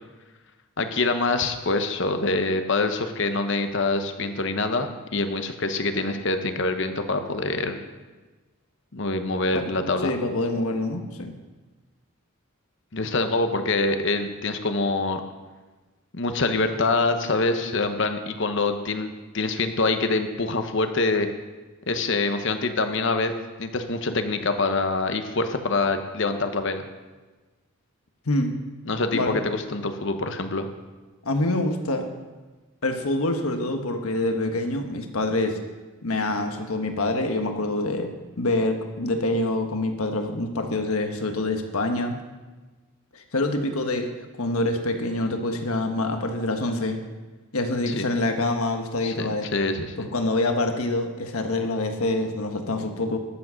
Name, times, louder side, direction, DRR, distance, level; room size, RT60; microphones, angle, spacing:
voice 1, 0.8-7.8 8.9-10.1 12.9-15.2 16.1-19.1 19.3-21.3 21.9-23.3 23.6-26.9 28.9-30.7 47.9-48.1 49.0-50.1, left 3 dB, 55° left, 7 dB, 0.9 m, -25 dB
voice 2, 9.5-11.3 28.3-28.5 29.1-29.4 31.2-32.1 32.8-35.6 36.0-38.1 38.4-42.2 43.1-44.1 44.4-47.0 47.5-49.5 50.0-53.2, left 2 dB, 75° left, 5 dB, 1.3 m, -26 dB
12.0 x 7.5 x 6.4 m, 1.3 s
head